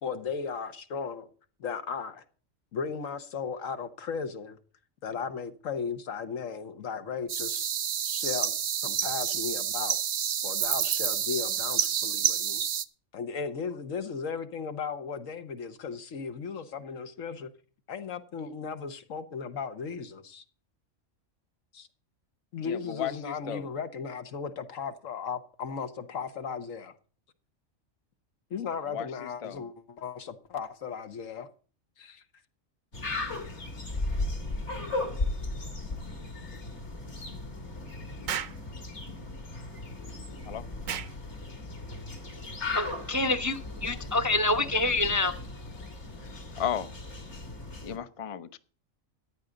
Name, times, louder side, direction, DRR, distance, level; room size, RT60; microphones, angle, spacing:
voice 1, 0.0-1.3 1.6-2.2 2.7-4.6 5.0-7.7 8.1-8.5 8.8-10.0 10.4-12.6 13.1-17.5 17.9-20.4 21.7-21.9 22.5-26.9 28.5-31.5 32.0-32.2, left 6 dB, 80° left, 1.5 m, -36 dB
sound 1, 7.3-12.8, right 8 dB, 55° right, 0.8 m, -29 dB
voice 2, 22.7-23.6 28.9-29.1 29.4-29.6 40.5-40.6 46.6-46.9 47.8-48.6, left 9 dB, 35° left, 0.5 m, -34 dB
sound 2, 32.9-48.0, left 2 dB, 60° left, 2.4 m, -36 dB
Explosion, 38.3-38.6 40.8-41.2, right 8 dB, 80° right, 1.2 m, -33 dB
voice 3, 42.7-45.3, left 2 dB, 20° right, 0.5 m, -27 dB
14.5 x 9.9 x 3.8 m
omnidirectional pair, 1.4 m